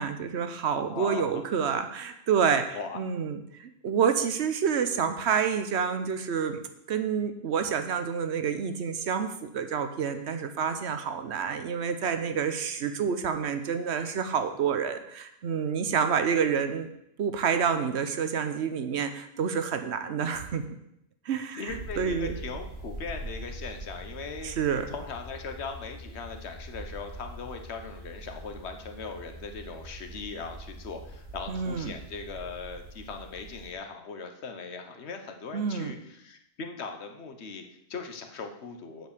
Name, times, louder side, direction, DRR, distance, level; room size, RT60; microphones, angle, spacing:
voice 1, 0.0-6.6 6.9-16.9 17.2-20.8 21.3-22.4 24.4-24.8 31.5-31.9 35.5-35.9, right 7 dB, 90° right, 8 dB, 1.1 m, -28 dB
voice 2, 0.9-1.4 2.7-3.0 21.6-24.5 24.9-39.1, left 4 dB, 80° left, 5 dB, 1.3 m, -39 dB
sound 1, 21.7-33.7, right 1 dB, 70° right, 1.8 m, -43 dB
7.6 x 5.4 x 6.7 m, 0.79 s
omnidirectional pair, 1.1 m